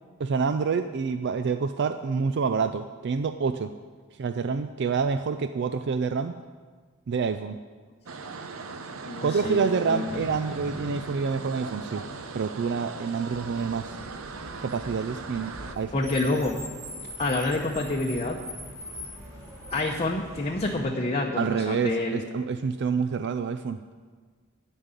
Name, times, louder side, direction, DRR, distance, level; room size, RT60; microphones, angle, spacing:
voice 1, 0.2-3.7 4.1-6.4 7.1-7.6 9.2-12.0 12.3-14.0 14.6-16.4 21.4-23.8, right 5 dB, 55° right, 9 dB, 0.4 m, -27 dB
sound 1, 8.1-15.8, right 4 dB, 75° right, 0.8 m, -39 dB
voice 2, 9.0-10.1 15.9-16.6 17.2-18.4 19.7-22.2, left 2 dB, 30° left, -1 dB, 0.8 m, -28 dB
sound 2, 10.1-13.2, left 2 dB, 75° left, 0.7 m, -43 dB
Car, 13.3-20.8, left 1 dB, 15° right, 2.8 m, -42 dB
12.5 x 5.3 x 8.9 m, 1.5 s
head